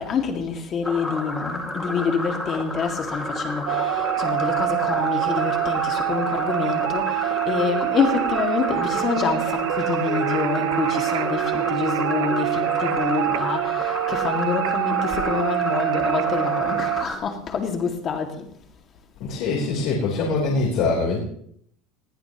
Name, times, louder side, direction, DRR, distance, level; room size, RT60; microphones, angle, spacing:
voice 1, 0.0-18.5, left 5 dB, 25° left, 2.1 m, -27 dB
sound 1, 0.8-17.2, left 1 dB, 5° left, 2.1 m, -31 dB
sound 2, 3.7-17.0, right 17 dB, 85° right, 0.5 m, -25 dB
voice 2, 19.2-21.2, left 3 dB, 50° left, 3.7 m, -23 dB
20.5 x 15.0 x 3.0 m
cardioid pair, 175°, 0 cm